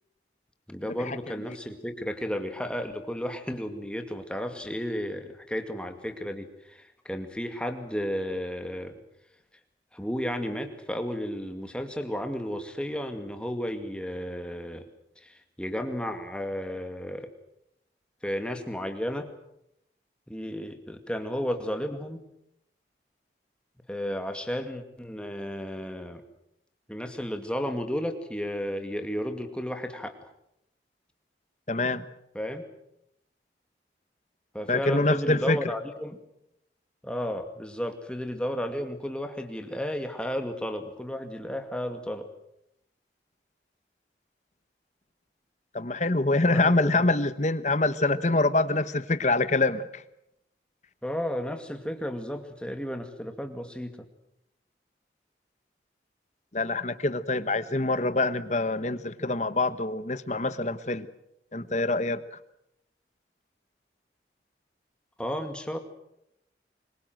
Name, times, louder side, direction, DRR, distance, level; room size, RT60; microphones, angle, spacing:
voice 1, 0.7-9.0 9.9-14.8 15.2-17.3 18.2-19.3 20.3-22.2 23.9-26.2 26.9-30.3 32.3-32.6 34.5-36.2 37.0-42.3 46.5-47.1 51.0-54.1 65.2-65.8, equal, 5° left, 6 dB, 2.3 m, -33 dB
voice 2, 31.7-32.0 34.7-35.7 45.7-50.0 56.5-61.1 61.5-62.4, left 2 dB, 40° left, 13 dB, 1.2 m, -25 dB
25.0 x 22.5 x 7.8 m, 0.79 s
head